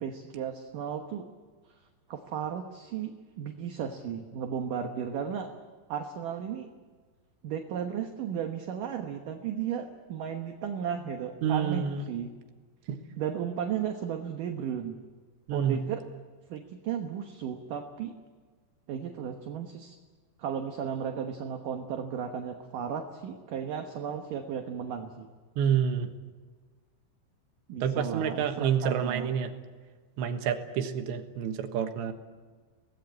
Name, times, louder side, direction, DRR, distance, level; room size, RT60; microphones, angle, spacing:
voice 1, 0.0-1.3 2.1-5.5 5.9-6.7 7.4-12.3 13.2-15.0 15.5-16.0 16.5-18.2 18.9-20.0 20.4-25.3 27.7-29.3, right 8 dB, 65° right, 4 dB, 2.3 m, -35 dB
voice 2, 11.4-12.0 12.9-13.0 15.5-15.8 25.6-26.1 27.8-29.5 30.2-32.1, right 8 dB, 80° right, 6 dB, 3.7 m, -28 dB
24.5 x 18.5 x 8.6 m, 1.4 s
omnidirectional pair, 5.1 m